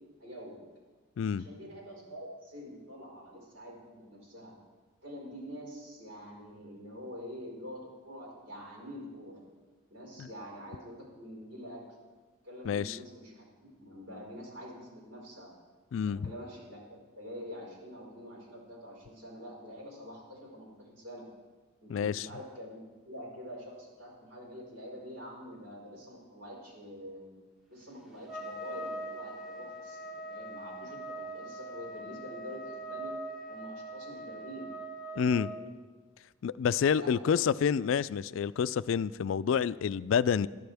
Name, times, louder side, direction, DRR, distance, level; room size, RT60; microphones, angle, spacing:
voice 1, 0.2-0.6 1.3-4.5 5.0-9.4 9.9-11.8 12.4-15.5 16.0-21.2 21.8-22.8 23.0-27.3 27.7-33.1 33.5-34.7 35.1-35.7 36.9-37.7, equal, 70° right, -3 dB, 5.0 m, -46 dB
voice 2, 12.7-13.0 15.9-16.3 21.9-22.3 35.2-35.5 36.4-40.5, left 7 dB, 75° left, 17 dB, 0.3 m, -28 dB
Trumpet, 28.3-35.6, right 2 dB, 5° right, 1.8 m, -42 dB
20.5 x 12.0 x 3.5 m, 1.3 s
head